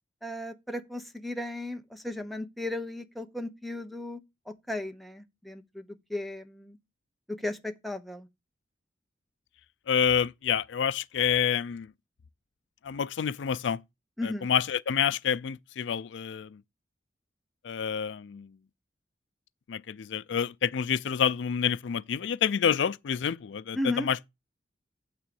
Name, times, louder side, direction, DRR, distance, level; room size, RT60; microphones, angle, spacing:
voice 1, 0.2-4.2 4.5-5.8 6.1-6.8 7.3-8.3 14.2-14.5 23.7-24.1, left 1 dB, ahead, 0.8 m, -35 dB
voice 2, 9.9-11.9 12.8-13.8 14.2-16.6 17.6-18.5 19.7-24.2, left 7 dB, 75° left, 0.4 m, -28 dB
9.0 x 3.7 x 6.8 m
head